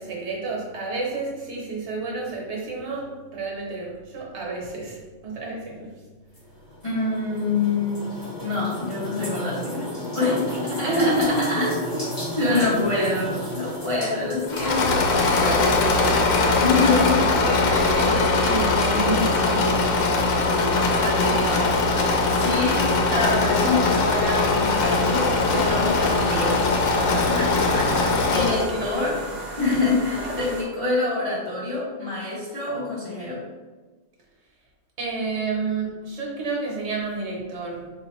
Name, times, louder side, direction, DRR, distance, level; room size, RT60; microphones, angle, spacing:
voice 1, 0.0-5.9 10.8-11.2 11.5-12.0 12.3-13.1 17.2-19.8 28.4-29.3 35.0-37.9, right 3 dB, 65° right, -2 dB, 1.1 m, -30 dB
sound 1, 6.3-16.0, left 1 dB, 20° left, 1.0 m, -34 dB
voice 2, 6.8-8.1 8.4-11.7 12.4-15.0 15.4-16.1 16.6-17.2 19.9-21.8 22.3-22.8 23.1-26.6 26.9-29.2 29.6-33.4, left 3 dB, 35° left, -8 dB, 0.5 m, -26 dB
Engine / Mechanisms, 14.5-28.7, left 3 dB, 80° left, 0.9 m, -21 dB
sound 2, 24.8-30.6, right 1 dB, 45° right, 0.6 m, -35 dB
3.9 x 2.5 x 3.0 m, 1.3 s
omnidirectional pair, 1.3 m